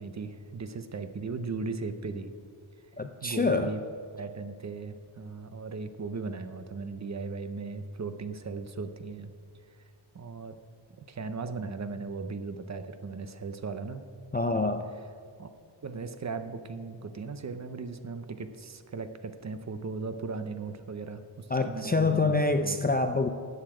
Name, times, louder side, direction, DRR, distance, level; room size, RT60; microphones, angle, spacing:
voice 1, 0.0-2.3 3.2-3.8 4.1-9.3 9.7-9.8 10.1-10.6 11.0-14.0 15.4-15.5 15.8-22.4 22.6-22.8, right 4 dB, 35° right, 10 dB, 0.6 m, -37 dB
voice 2, 3.0-3.7 14.3-14.8 21.5-23.3, left 3 dB, 20° left, 6 dB, 0.3 m, -26 dB
13.5 x 8.8 x 4.9 m, 2.3 s
wide cardioid pair, 180°, 49 cm